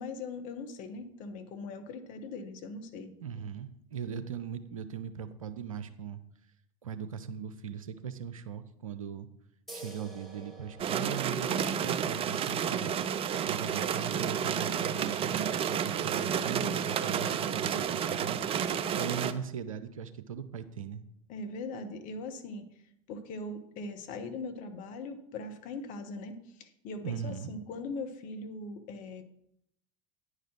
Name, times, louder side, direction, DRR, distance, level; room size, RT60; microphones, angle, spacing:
voice 1, 0.0-3.1 21.3-22.7 23.1-29.2, left 3 dB, 50° left, 7 dB, 1.1 m, -40 dB
voice 2, 3.2-6.2 6.8-9.3 9.7-13.2 13.5-21.0 27.0-27.5, right 7 dB, 80° right, 12 dB, 0.7 m, -39 dB
sound 1, 9.7-16.8, right 1 dB, ahead, 2.8 m, -53 dB
sound 2, 10.8-19.3, right 8 dB, 35° right, 0.6 m, -31 dB
9.8 x 4.9 x 6.0 m, 0.76 s
figure-of-eight pair, 75°, 17 cm